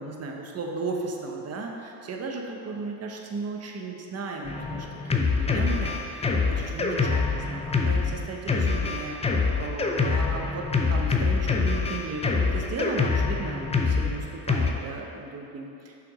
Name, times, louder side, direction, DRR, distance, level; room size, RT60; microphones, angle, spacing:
voice 1, 0.0-4.9 5.1-15.9, right 3 dB, 30° right, 0 dB, 0.9 m, -35 dB
Drum kit, 4.4-14.7, left 4 dB, 15° left, 0.4 m, -25 dB
6.2 x 3.5 x 4.8 m, 2.7 s
supercardioid pair, 80°, 47 cm